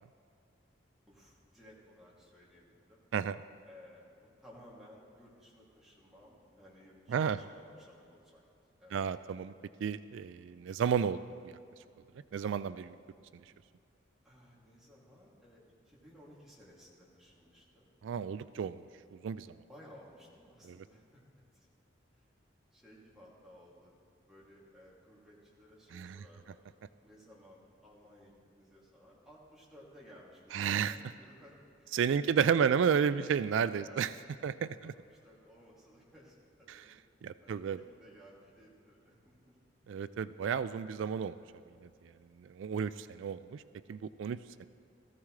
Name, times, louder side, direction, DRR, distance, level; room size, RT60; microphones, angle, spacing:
voice 1, 1.1-3.0 3.6-8.4 8.8-9.0 14.2-18.0 19.7-21.2 21.5-21.7 22.1-22.2 22.7-23.9 24.3-26.7 27.0-33.3 33.8-34.0 34.4-34.5 34.8-34.9 35.2-36.9 37.4-39.6 43.1-43.7, equal, ahead, -7 dB, 2.6 m, -58 dB
voice 2, 7.1-7.4 8.9-9.5 9.8-11.2 11.4-11.6 12.3-13.0 18.0-18.8 19.1-19.6 20.6-20.8 25.9-26.2 30.5-31.0 31.9-34.1 34.4-34.9 36.7-36.8 37.2-37.8 39.9-41.4 41.8-42.1 42.4-43.6 43.9-44.7, right 7 dB, 90° right, 14 dB, 0.3 m, -32 dB
17.5 x 14.5 x 3.2 m, 2.5 s
head